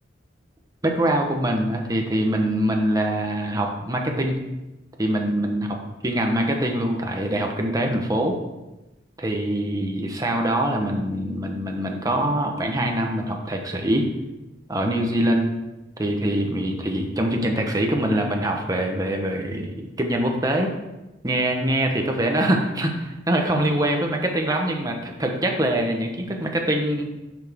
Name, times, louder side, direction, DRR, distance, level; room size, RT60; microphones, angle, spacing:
voice 1, 0.8-4.4 5.0-5.7 6.0-8.4 9.2-14.1 14.7-15.5 16.0-20.7 21.2-27.1, right 1 dB, 20° right, 2 dB, 1.2 m, -24 dB
11.5 x 6.2 x 3.7 m, 1.0 s
head